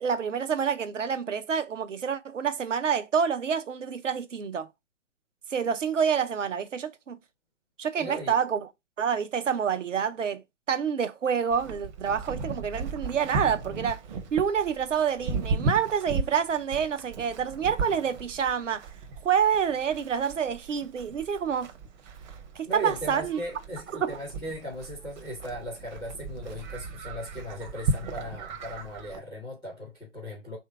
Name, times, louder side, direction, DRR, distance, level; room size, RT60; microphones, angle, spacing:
voice 1, 0.0-4.7 5.5-7.2 7.8-8.6 9.0-10.4 10.7-14.0 14.3-18.9 19.2-21.7 22.6-23.4 23.9-24.2, right 7 dB, 80° right, 0.7 m, -27 dB
voice 2, 7.9-8.4 22.6-30.6, equal, ahead, 0.3 m, -38 dB
Livestock farm animals working animals, 11.5-29.2, right 3 dB, 40° right, 0.7 m, -36 dB
3.3 x 2.7 x 4.3 m
figure-of-eight pair, 130°, 36 cm